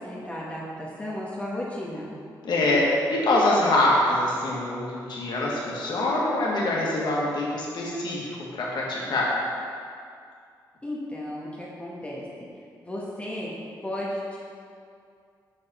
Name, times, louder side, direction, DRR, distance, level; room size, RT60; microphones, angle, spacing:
voice 1, 0.0-2.1 10.8-12.5 12.8-13.5 13.8-14.4, left 1 dB, 15° left, -6 dB, 1.4 m, -34 dB
voice 2, 2.4-9.3, left 1 dB, 65° left, -4 dB, 1.7 m, -24 dB
6.1 x 5.0 x 4.3 m, 2.3 s
cardioid pair, 60°, 8 cm